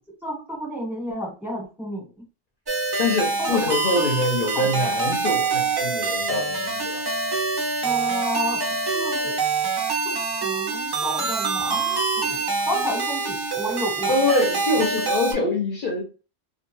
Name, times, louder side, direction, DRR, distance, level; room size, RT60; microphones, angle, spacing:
voice 1, 0.2-2.0 3.4-3.7 4.5-4.7 7.8-8.6 8.9-9.4 10.0-14.1 15.4-15.5, equal, ahead, 0.9 m, -31 dB
sound 1, 2.7-15.3, right 4 dB, 35° right, 0.4 m, -25 dB
voice 2, 3.0-7.0 14.1-16.0, left 2 dB, 60° left, 0.7 m, -24 dB
2.3 x 2.2 x 3.0 m
omnidirectional pair, 1.1 m